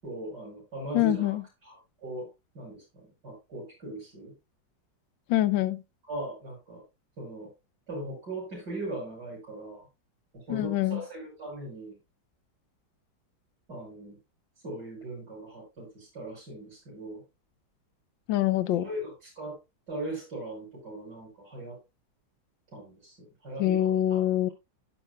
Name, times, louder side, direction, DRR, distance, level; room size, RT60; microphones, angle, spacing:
voice 1, 0.0-2.3 2.5-4.3 6.1-6.8 7.2-7.5 7.9-9.8 10.3-11.9 13.7-14.2 14.6-17.2 18.8-19.6 19.9-21.8 22.7-23.2 23.4-24.5, right 1 dB, 60° right, 6.7 m, -39 dB
voice 2, 0.9-1.4 5.3-5.8 10.5-11.0 18.3-18.8 23.6-24.5, left 13 dB, 85° left, 1.4 m, -25 dB
11.5 x 10.0 x 2.2 m
omnidirectional pair, 2.0 m